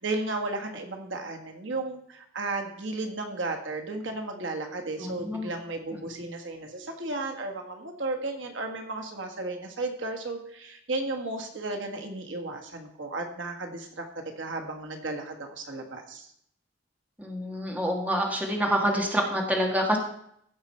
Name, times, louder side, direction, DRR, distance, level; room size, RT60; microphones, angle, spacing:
voice 1, 0.0-16.3, right 2 dB, 85° right, 4 dB, 1.6 m, -34 dB
voice 2, 5.0-5.5 17.2-20.0, equal, 10° right, 0 dB, 1.7 m, -27 dB
15.5 x 5.7 x 4.3 m, 0.71 s
head